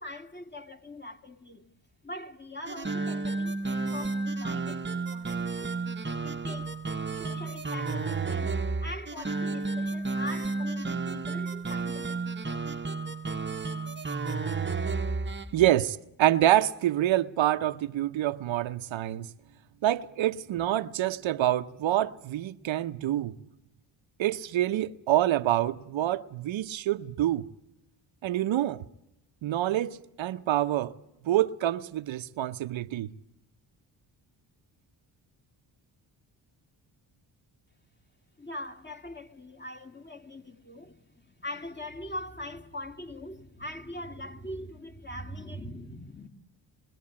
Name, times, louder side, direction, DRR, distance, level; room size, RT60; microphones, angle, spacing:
voice 1, 0.0-1.7 2.0-5.7 6.2-6.8 7.1-12.8 15.0-15.6 38.4-46.3, left 1 dB, 20° left, 2.7 m, -42 dB
sound 1, 2.7-15.5, right 3 dB, 25° right, 1.2 m, -32 dB
voice 2, 15.5-19.3 19.8-23.4 24.2-27.4 28.2-28.8 29.4-30.9 31.2-33.1, right 13 dB, 75° right, 1.0 m, -26 dB
27.0 x 22.5 x 8.7 m
supercardioid pair, 55°, 47 cm